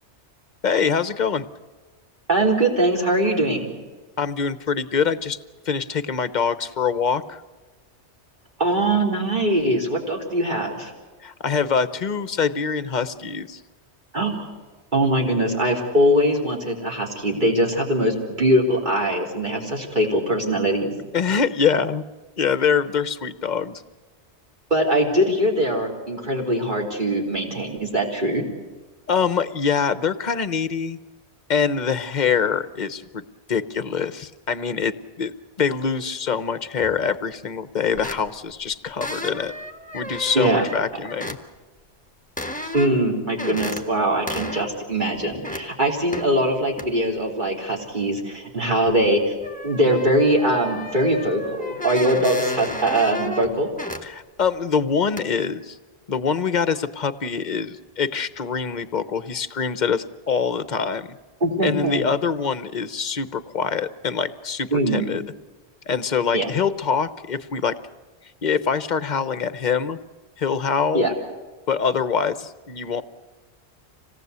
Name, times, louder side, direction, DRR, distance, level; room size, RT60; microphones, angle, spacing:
voice 1, 0.6-1.5 4.2-5.4 5.7-7.4 11.2-13.6 21.1-22.0 22.4-23.8 29.1-31.0 31.5-33.2 33.5-35.3 35.6-39.5 39.9-41.4 54.0-55.8 56.1-61.2 61.6-65.2 65.9-67.7 68.4-70.0 70.4-71.1 71.7-73.0, left 6 dB, 45° left, 13 dB, 0.9 m, -24 dB
voice 2, 2.3-3.8 8.6-10.9 14.1-14.5 14.9-20.9 24.7-28.5 40.3-40.7 42.7-49.4 49.6-53.7 61.4-62.1 64.7-65.1 66.3-66.5 70.9-71.1, right 1 dB, 45° right, -1 dB, 3.9 m, -22 dB
sound 1, 36.8-37.0 37.9-38.5 39.0-41.4 42.4-43.1 43.4-43.8 44.3-44.7 45.1-45.6 46.1-46.3 46.8-46.9 48.9-49.0 49.4-54.0 54.4-54.5 55.2-55.3, left 1 dB, 5° left, 1.4 m, -33 dB
26.0 x 18.0 x 8.1 m, 1.3 s
omnidirectional pair, 1.2 m